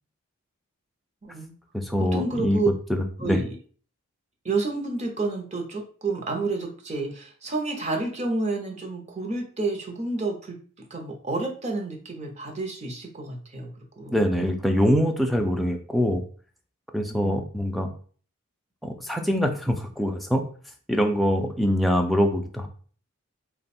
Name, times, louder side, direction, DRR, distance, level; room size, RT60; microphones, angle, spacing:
voice 1, 1.2-1.5 2.1-2.7 3.2-3.6 4.4-10.6 10.9-13.7 14.0-14.2 17.1-17.4, right 3 dB, 30° right, 2 dB, 0.7 m, -29 dB
voice 2, 1.7-3.4 14.1-16.2 16.9-17.9 18.8-20.4 20.9-22.7, equal, ahead, 3 dB, 0.3 m, -24 dB
3.4 x 2.2 x 4.1 m, 0.43 s
head